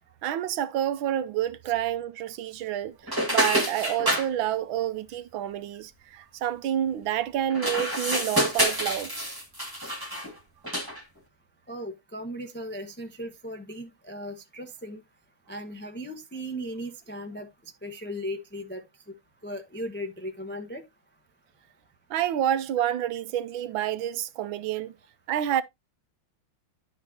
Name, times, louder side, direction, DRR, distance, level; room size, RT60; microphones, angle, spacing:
voice 1, 0.2-9.1 10.2-10.3 22.1-24.9 25.3-25.6, right 11 dB, 75° right, 1.3 m, -28 dB
sound 1, 3.1-4.3 7.5-10.3 10.6-11.0, equal, 10° right, 1.9 m, -27 dB
voice 2, 11.7-15.0 15.5-17.5 17.8-18.8 19.4-20.8, equal, 10° left, 0.6 m, -37 dB
11.5 x 5.7 x 2.8 m
omnidirectional pair, 2.3 m